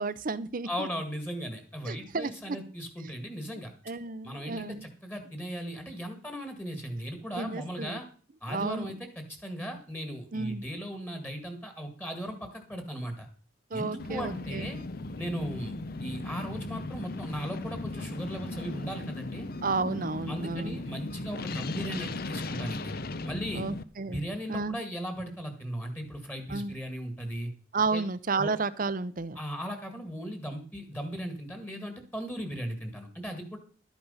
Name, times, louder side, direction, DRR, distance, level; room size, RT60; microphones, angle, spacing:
voice 1, 0.0-0.9 1.9-2.6 3.9-4.9 7.4-8.0 8.5-8.9 10.3-10.6 13.7-14.7 16.6-16.7 19.6-20.8 23.5-24.2 24.5-24.8 26.5-26.8 27.7-29.4, right 3 dB, 45° right, 16 dB, 0.7 m, -32 dB
voice 2, 0.6-3.7 4.2-8.1 8.4-13.3 13.7-14.8 15.2-19.5 20.3-22.9 23.2-23.6 24.1-27.5 27.9-28.0 28.4-28.5 29.4-33.6, equal, 10° left, 6 dB, 1.8 m, -37 dB
sound 1, 14.0-23.8, left 2 dB, 50° left, 0.7 m, -37 dB
12.0 x 8.9 x 5.6 m, 0.42 s
head